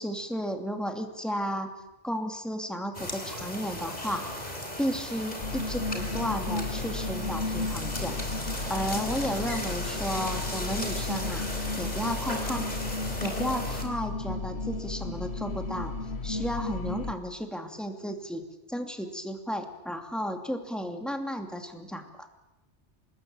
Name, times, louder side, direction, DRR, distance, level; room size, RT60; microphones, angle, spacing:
voice 1, 0.0-1.7 2.0-4.3 4.8-8.2 8.7-11.5 11.8-12.7 13.2-15.9 16.2-22.0, equal, ahead, 5 dB, 2.7 m, -33 dB
sound 1, 2.9-13.8, left 1 dB, 35° left, 4.2 m, -36 dB
sound 2, 5.4-17.1, left 3 dB, 65° left, 1.4 m, -34 dB
26.5 x 20.5 x 9.0 m, 0.96 s
omnidirectional pair, 1.2 m